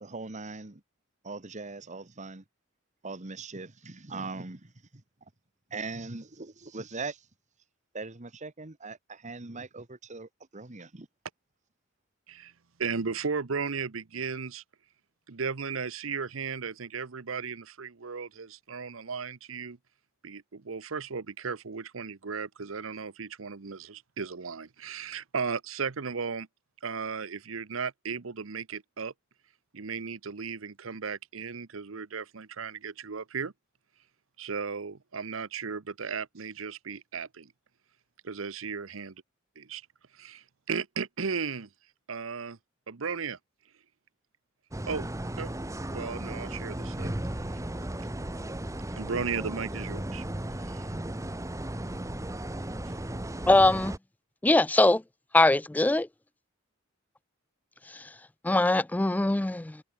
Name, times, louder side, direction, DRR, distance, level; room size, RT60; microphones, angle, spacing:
voice 1, 0.0-0.8 1.2-2.4 3.0-5.0 5.7-7.3 7.9-11.1, right 3 dB, 35° right, 1.4 m, -40 dB
voice 2, 12.8-14.6 15.3-19.8 20.2-26.5 26.8-29.1 29.7-33.5 34.4-37.5 38.2-39.1 39.6-39.8 40.2-41.7 42.1-42.6 42.9-43.4 44.9-45.1 45.4-45.5 45.9-47.1 49.0-50.2 50.7-50.9 52.9-53.0, right 5 dB, 80° right, 0.9 m, -35 dB
sound 1, 44.7-54.0, right 1 dB, 15° right, 1.2 m, -35 dB
voice 3, 53.5-53.9 54.4-55.0 55.3-56.1 57.9-58.0 58.4-59.8, left 2 dB, 10° left, 0.3 m, -22 dB
head